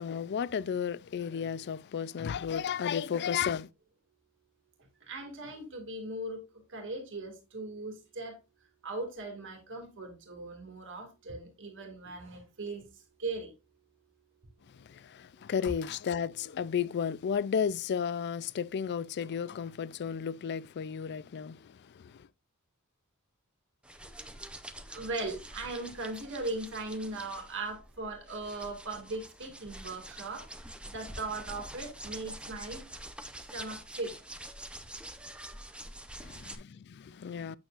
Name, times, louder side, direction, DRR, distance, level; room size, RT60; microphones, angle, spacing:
voice 1, 0.0-3.7 14.7-22.3 36.2-37.6, left 7 dB, 50° left, 0.4 m, -33 dB
voice 2, 5.1-6.4 6.7-8.3 8.8-12.8 13.2-13.5 24.9-30.4 30.9-32.8 33.5-34.1, right 2 dB, 60° right, 2.2 m, -38 dB
sound 1, 23.8-36.5, right 1 dB, 5° right, 0.7 m, -46 dB
8.7 x 7.0 x 2.5 m
head